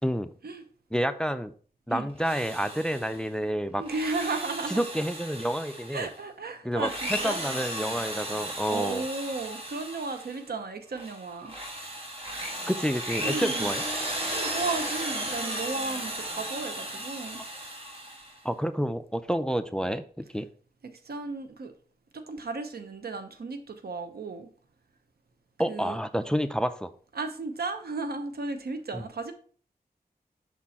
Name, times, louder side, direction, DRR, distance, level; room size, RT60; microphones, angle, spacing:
voice 1, 0.9-1.5 1.9-3.8 4.7-6.1 6.6-9.1 12.7-13.8 18.4-20.5 25.6-26.9 28.9-29.0, equal, 5° left, 0.4 m, -29 dB
Drill, 2.1-3.2 3.8-6.1 6.7-10.4 10.9-18.4, right 1 dB, 35° right, 1.8 m, -35 dB
voice 2, 3.8-4.9 5.9-7.4 8.7-11.5 13.2-13.7 14.3-17.4 20.8-21.7 22.1-24.5 25.7-26.0 27.1-29.3, right 3 dB, 80° right, 0.8 m, -34 dB
6.0 x 4.3 x 4.2 m
wide cardioid pair, 80°, 16 cm